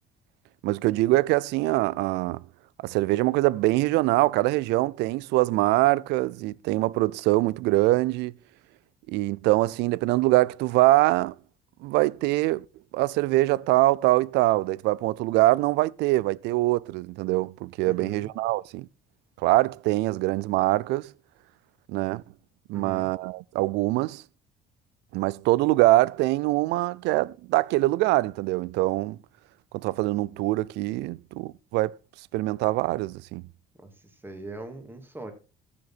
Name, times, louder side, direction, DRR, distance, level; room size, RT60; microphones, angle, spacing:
voice 1, 0.6-2.4 2.8-8.3 9.1-11.3 11.8-12.6 12.9-18.9 19.4-21.1 21.9-22.2 22.7-24.2 25.1-29.2 29.7-32.0 32.3-33.4, right 18 dB, 90° right, 0.4 m, -23 dB
voice 2, 17.8-18.3 22.7-23.1 33.8-35.3, right 2 dB, 10° right, 2.8 m, -41 dB
14.0 x 6.8 x 4.2 m
cardioid pair, 110°, 17 cm